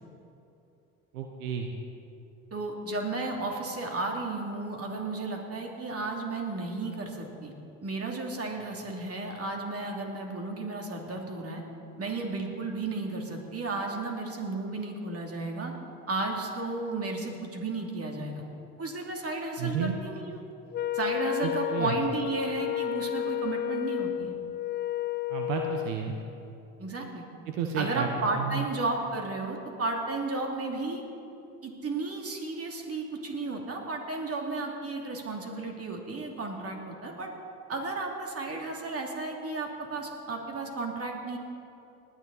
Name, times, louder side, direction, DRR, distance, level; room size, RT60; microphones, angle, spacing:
voice 1, 1.1-1.7 19.6-20.0 21.4-21.9 25.3-26.1 27.5-28.1 28.4-28.7, right 7 dB, 80° right, 3 dB, 1.1 m, -31 dB
voice 2, 2.5-7.5 7.8-11.6 12.0-15.7 16.1-18.4 18.8-20.4 20.9-24.3 26.8-27.2 27.7-31.0 31.6-37.3 37.7-41.4, right 3 dB, 35° right, 1 dB, 2.7 m, -33 dB
Wind instrument woodwind instrument, 20.7-26.0, left 13 dB, 30° left, 0.4 m, -31 dB
19.5 x 10.5 x 4.1 m, 2.8 s
hypercardioid pair, 65°, 39 cm